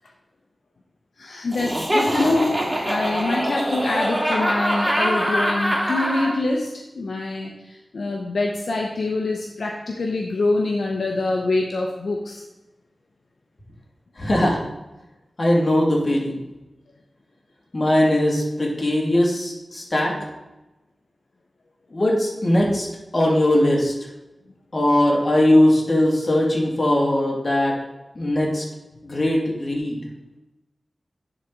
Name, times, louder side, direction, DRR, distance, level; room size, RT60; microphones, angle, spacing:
voice 1, 1.2-6.7 6.9-12.4, left 2 dB, 80° left, 0 dB, 0.8 m, -25 dB
Laughter, 1.5-6.3, equal, 15° right, 2.4 m, -23 dB
voice 2, 14.2-14.6 15.4-16.4 17.7-20.1 21.9-22.9 23.1-23.9 24.7-27.7 28.1-28.6 29.0-30.0, left 1 dB, 45° left, -2 dB, 2.4 m, -20 dB
10.5 x 4.1 x 4.6 m, 1.0 s
wide cardioid pair, 55°, 0 cm